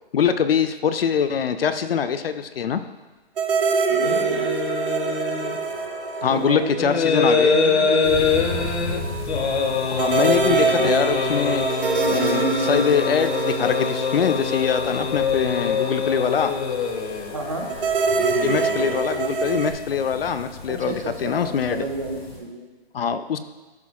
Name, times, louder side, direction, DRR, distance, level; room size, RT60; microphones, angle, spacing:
voice 1, 0.1-2.8 6.2-7.6 9.9-11.6 12.1-16.5 18.4-21.8 22.9-23.4, left 7 dB, 65° left, 10 dB, 0.5 m, -23 dB
sound 1, 3.4-7.1 7.4-7.5 10.0-15.4 17.7-19.7, right 5 dB, 60° right, 0.9 m, -24 dB
voice 2, 3.9-4.5 6.2-7.0 7.4-8.7 10.8-10.9 17.3-17.7 20.7-22.7, right 3 dB, 30° right, 2 dB, 0.6 m, -32 dB
sound 2, 4.0-19.0, left 5 dB, 90° left, 0.9 m, -25 dB
sound 3, 8.0-22.4, left 2 dB, 25° left, 0.8 m, -38 dB
11.5 x 4.6 x 2.3 m, 1.2 s
hypercardioid pair, 175°, 32 cm